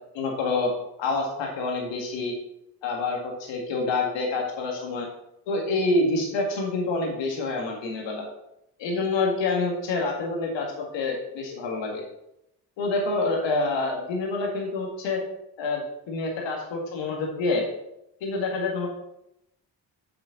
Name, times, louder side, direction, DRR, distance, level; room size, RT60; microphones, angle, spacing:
voice 1, 0.1-0.7 1.0-2.3 2.8-5.1 5.5-8.2 8.8-12.0 12.8-15.2 15.6-17.7 18.2-18.9, left 3 dB, 85° left, 0 dB, 2.0 m, -27 dB
6.8 x 6.1 x 5.9 m, 0.82 s
supercardioid pair, 45°, 43 cm